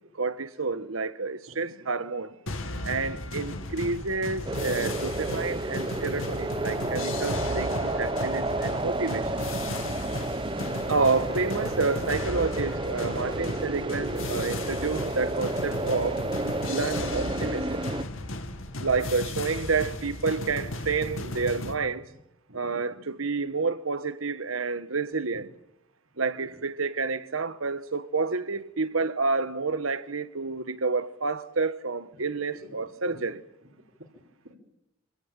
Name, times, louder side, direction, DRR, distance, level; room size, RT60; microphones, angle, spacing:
voice 1, 0.2-2.3 2.8-9.3 10.9-16.2 16.7-17.8 18.8-22.1 22.5-25.5 26.2-33.4, right 4 dB, 85° right, 1.3 m, -29 dB
sound 1, 2.5-21.7, left 1 dB, 75° left, 2.4 m, -35 dB
sound 2, 4.5-18.0, right 2 dB, 25° right, 0.9 m, -31 dB
voice 2, 22.5-23.0 26.1-26.2 32.1-32.2 32.6-32.7 33.0-33.2 34.4-34.6, right 1 dB, 65° right, 4.7 m, -47 dB
26.5 x 17.0 x 9.0 m
head